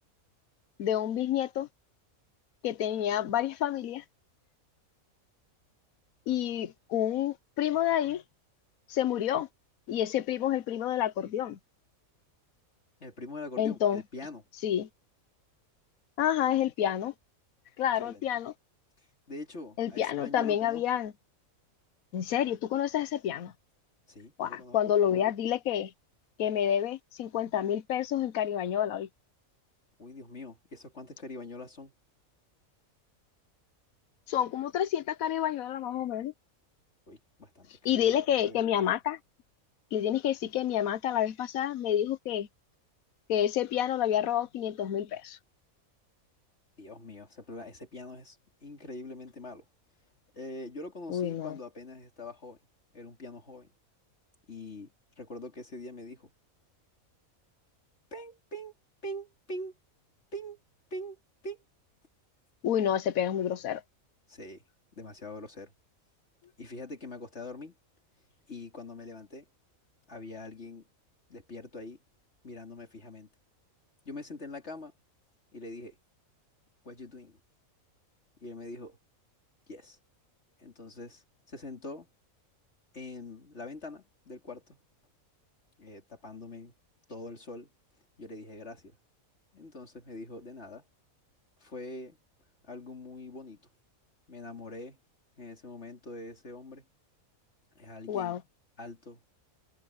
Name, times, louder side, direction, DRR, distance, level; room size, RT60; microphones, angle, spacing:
voice 1, 0.8-1.7 2.6-4.0 6.3-8.2 8.9-9.5 9.9-11.6 13.6-14.0 14.6-14.9 16.2-17.1 17.8-18.5 19.8-21.1 22.1-23.5 24.4-25.9 26.4-29.1 34.3-36.3 37.8-39.2 39.9-42.5 43.3-45.4 51.1-51.6 62.6-63.8 98.1-98.4, left 10 dB, 80° left, 1.2 m, -29 dB
voice 2, 13.0-14.4 18.0-18.4 19.3-20.8 24.1-24.8 30.0-31.9 37.1-38.9 46.8-49.7 50.3-52.6 52.9-53.7 54.5-56.3 58.1-58.7 59.0-59.7 60.3-60.6 60.9-61.2 61.4-61.6 64.3-64.6 65.0-65.7 66.6-67.7 68.5-69.5 70.1-70.9 71.3-72.0 72.4-73.3 74.1-74.9 75.5-76.0 76.8-77.4 78.4-79.0 79.7-80.0 80.6-82.1 82.9-84.8 85.8-86.7 87.1-87.7 88.2-89.0 89.5-90.8 91.6-92.2 92.6-93.6 94.3-95.0 95.4-96.9 97.8-98.4 98.8-99.2, left 2 dB, 50° left, 3.4 m, -43 dB
omnidirectional pair, 1.5 m